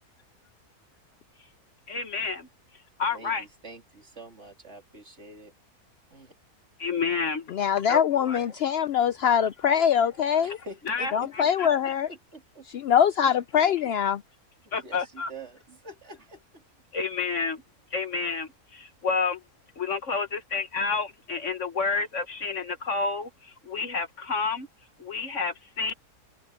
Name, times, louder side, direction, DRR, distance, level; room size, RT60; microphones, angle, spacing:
voice 1, 1.9-2.5 3.0-3.4 6.8-7.5 7.9-8.4 9.4-9.5 10.9-11.1 11.6-11.7 14.7-15.3 16.9-17.6 17.9-19.4 19.8-24.7 25.0-25.9, left 4 dB, 55° left, 1.6 m, -29 dB
voice 2, 3.1-5.5 6.1-6.3 10.4-11.5 12.0-12.7 13.5-13.7 14.6-16.6, right 2 dB, 45° right, 3.4 m, -45 dB
voice 3, 7.5-10.6 11.1-12.1 12.7-14.2, left 8 dB, 85° left, 0.5 m, -23 dB
omnidirectional pair, 1.6 m